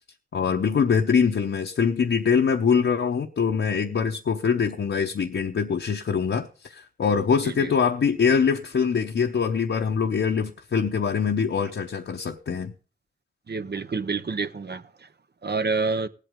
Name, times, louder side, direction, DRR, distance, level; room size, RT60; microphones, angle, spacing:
voice 1, 0.3-12.7, left 6 dB, 80° left, 0.8 m, -23 dB
voice 2, 13.5-14.8 15.4-16.1, right 4 dB, 60° right, 0.8 m, -27 dB
18.5 x 8.3 x 3.6 m
cardioid pair, 45°, 19 cm